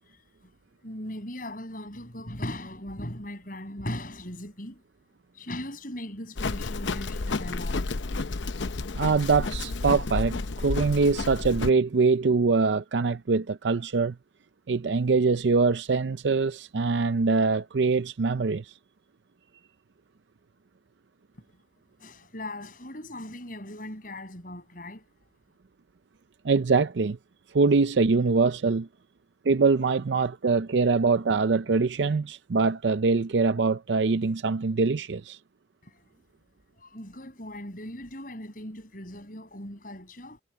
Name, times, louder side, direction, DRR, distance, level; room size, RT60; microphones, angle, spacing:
voice 1, 0.0-0.5 0.8-4.8 5.3-7.9 22.0-25.1 35.8-36.0 36.8-40.4, left 1 dB, 50° left, 6.7 m, -39 dB
Livestock farm animals working animals, 6.4-11.7, left 3 dB, 85° left, 0.8 m, -31 dB
voice 2, 8.9-14.1 14.7-18.6 26.4-27.2 27.5-28.9 29.5-35.4, right 4 dB, 75° right, 0.5 m, -23 dB
head